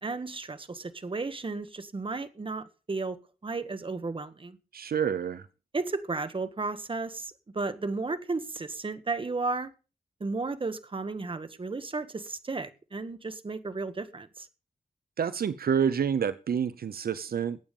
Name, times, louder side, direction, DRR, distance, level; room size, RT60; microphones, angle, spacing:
voice 1, 0.0-4.6 5.7-9.7 10.2-14.5, right 3 dB, 35° right, 1.6 m, -34 dB
voice 2, 4.7-5.5 15.2-17.6, right 7 dB, 75° right, 0.8 m, -28 dB
20.0 x 8.8 x 5.4 m
wide cardioid pair, 100°, 16 cm